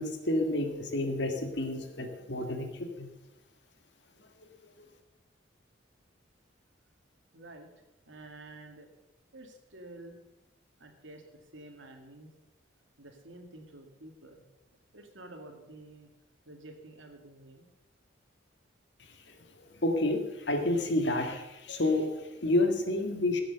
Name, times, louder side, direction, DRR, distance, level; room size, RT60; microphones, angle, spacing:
voice 1, 0.0-3.1 19.3-19.4 19.8-23.4, left 1 dB, 65° left, 5 dB, 1.8 m, -29 dB
voice 2, 7.3-7.7 8.1-8.9 9.3-10.1 10.8-11.2 11.5-12.3 13.0-14.4 14.9-16.1 16.5-17.7, right 2 dB, 80° right, 3 dB, 2.3 m, -49 dB
15.0 x 7.9 x 6.8 m, 1.0 s
head